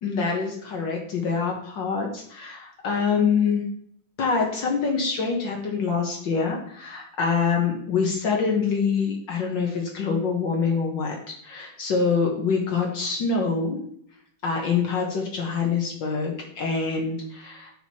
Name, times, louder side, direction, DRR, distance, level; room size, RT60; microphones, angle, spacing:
voice 1, 0.0-3.6 4.2-13.8 14.4-17.7, left 5 dB, 60° left, 0 dB, 1.8 m, -25 dB
7.7 x 6.3 x 4.2 m, 0.67 s
omnidirectional pair, 2.3 m